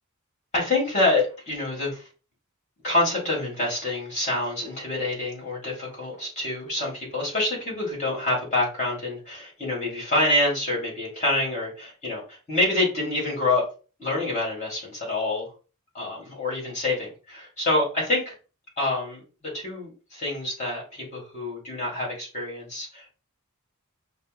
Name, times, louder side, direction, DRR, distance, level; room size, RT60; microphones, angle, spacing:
voice 1, 0.5-2.0 2.8-13.7 14.0-15.5 15.9-18.3 18.8-23.1, left 2 dB, 35° left, -3 dB, 2.1 m, -27 dB
5.5 x 2.0 x 3.6 m, 0.35 s
head